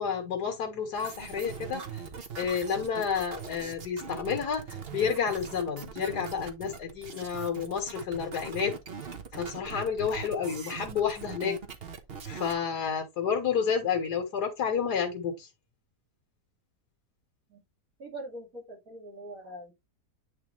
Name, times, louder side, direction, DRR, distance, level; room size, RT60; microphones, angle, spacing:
voice 1, 0.0-2.0 2.4-4.6 4.9-8.7 9.3-11.6 12.3-15.5, left 7 dB, 80° left, 2.0 m, -30 dB
sound 1, 0.9-12.5, right 6 dB, 40° right, 1.2 m, -41 dB
voice 2, 18.0-19.7, right 1 dB, 60° right, 2.7 m, -42 dB
9.6 x 3.5 x 3.1 m
omnidirectional pair, 1.7 m